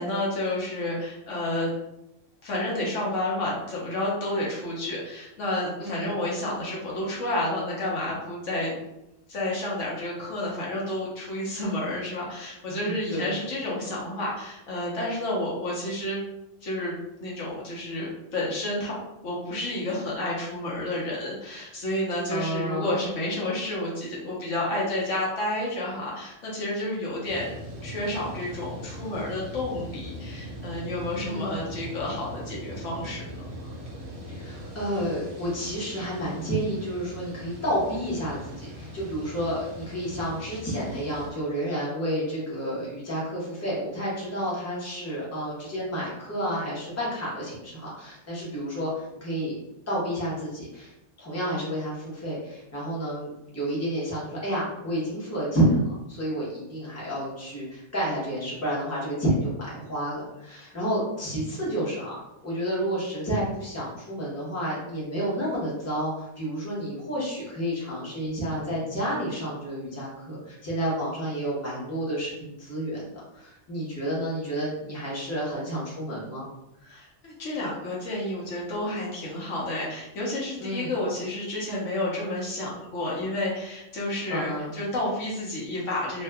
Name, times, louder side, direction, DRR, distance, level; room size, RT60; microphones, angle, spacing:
voice 1, 0.0-1.7 2.4-8.7 9.3-16.2 16.6-19.0 19.2-27.5 27.8-33.3 33.6-33.7 76.8-86.2, left 1 dB, 70° left, -4 dB, 1.1 m, -30 dB
voice 2, 5.8-6.1 12.7-13.3 22.3-23.0 31.2-31.6 34.3-49.6 49.9-50.9 51.2-55.8 56.1-62.1 62.4-76.5 80.6-80.9 84.3-84.8, equal, 15° left, -7 dB, 0.8 m, -30 dB
sound 1, 27.3-41.3, equal, 50° right, 0.4 m, -40 dB
2.6 x 2.3 x 3.4 m, 0.88 s
omnidirectional pair, 1.4 m